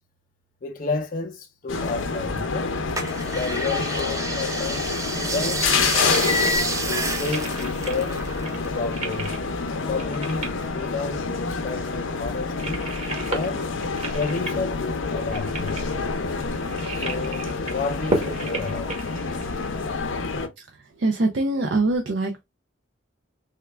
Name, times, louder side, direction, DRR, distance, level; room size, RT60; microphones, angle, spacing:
voice 1, 0.6-2.7 3.3-6.3 6.9-8.2 8.7-9.4 9.9-12.9 13.3-13.7 14.1-16.1 16.9-19.1, left 4 dB, 45° left, 0.4 m, -31 dB
sound 1, 1.7-20.5, left 4 dB, 85° left, 0.6 m, -28 dB
sound 2, 3.0-8.8 9.1-10.4 10.8-11.7 12.1-12.2, right 1 dB, 15° right, 0.5 m, -29 dB
sound 3, 4.8-20.0, right 2 dB, 35° right, 0.9 m, -35 dB
voice 2, 21.0-22.4, right 2 dB, 65° right, 0.5 m, -23 dB
3.5 x 2.2 x 3.2 m
head